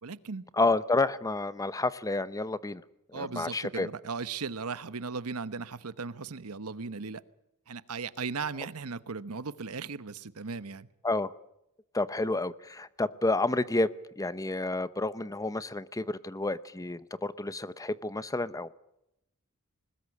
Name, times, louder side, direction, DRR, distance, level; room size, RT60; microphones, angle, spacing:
voice 1, 0.0-0.5 3.1-7.2 7.7-10.9, right 4 dB, 75° right, 1.0 m, -37 dB
voice 2, 0.6-2.8 3.1-3.9 11.0-11.3 11.9-13.9 14.2-18.7, left 2 dB, 15° left, 0.7 m, -30 dB
21.0 x 20.0 x 8.5 m
head